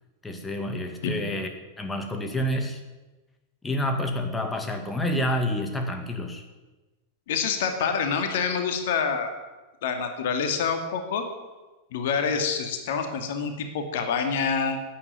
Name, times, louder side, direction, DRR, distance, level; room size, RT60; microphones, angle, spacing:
voice 1, 0.2-1.5 1.8-2.8 3.6-6.4, left 1 dB, 10° left, 5 dB, 2.0 m, -28 dB
voice 2, 7.3-9.4 9.8-11.2 11.9-14.8, left 6 dB, 55° left, 6 dB, 2.4 m, -27 dB
16.0 x 9.7 x 9.5 m, 1.2 s
figure-of-eight pair, 90°, 0 cm